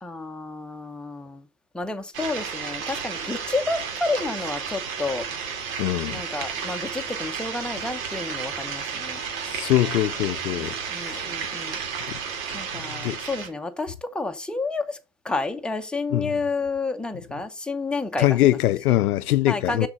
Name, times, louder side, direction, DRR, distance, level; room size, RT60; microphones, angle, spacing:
voice 1, 0.0-1.4 1.7-5.3 6.1-9.2 10.5-11.8 12.5-15.0 15.2-18.6 19.5-19.9, left 3 dB, ahead, 0.9 m, -30 dB
sound 1, 2.1-13.5, right 6 dB, 60° right, 2.5 m, -32 dB
voice 2, 5.8-6.2 9.4-11.3 12.1-12.2 13.0-13.2 16.1-16.4 18.2-19.9, left 14 dB, 75° left, 0.6 m, -23 dB
6.5 x 6.0 x 5.3 m
figure-of-eight pair, 85°, 46 cm